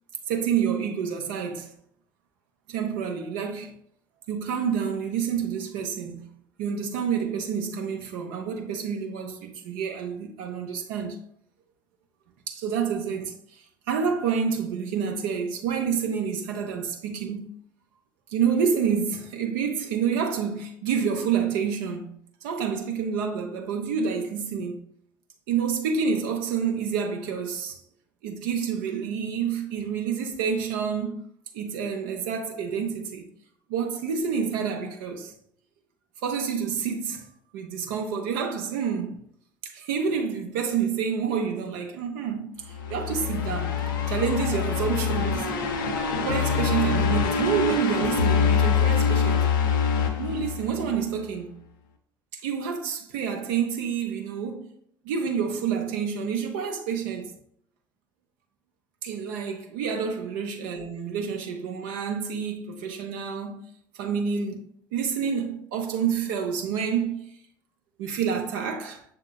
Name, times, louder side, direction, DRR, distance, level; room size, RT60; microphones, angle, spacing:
voice 1, 0.3-1.7 2.7-3.7 4.3-6.3 6.6-11.2 12.5-17.5 18.3-24.8 25.5-27.8 28.2-31.2 31.5-33.3 33.7-35.3 36.2-37.3 37.5-39.2 39.6-43.8 44.1-45.6 46.2-49.5 50.2-51.6 52.3-54.7 55.0-57.3 59.0-63.6 63.9-64.6 64.9-67.3 68.0-69.0, right 6 dB, 60° right, 0.6 m, -28 dB
sound 1, 42.7-51.0, left 6 dB, 70° left, 0.5 m, -25 dB
6.3 x 3.7 x 2.2 m
figure-of-eight pair, 55°, 12 cm